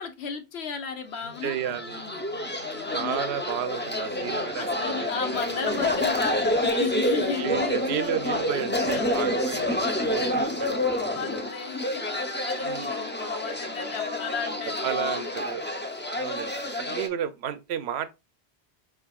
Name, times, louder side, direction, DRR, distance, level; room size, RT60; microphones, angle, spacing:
voice 1, 0.0-2.2 2.7-3.2 4.5-8.0 8.9-9.0 10.4-10.6 10.9-15.5 16.7-16.8, left 6 dB, 80° left, 1.1 m, -35 dB
sound 1, 1.2-15.3, left 3 dB, 55° left, 0.6 m, -45 dB
sound 2, 1.3-17.1, left 1 dB, 15° left, 0.4 m, -28 dB
voice 2, 1.4-2.0 2.9-5.1 7.4-10.8 12.6-12.9 14.8-15.6 16.2-18.1, right 8 dB, 80° right, 0.8 m, -32 dB
5.0 x 3.5 x 2.3 m
omnidirectional pair, 1.1 m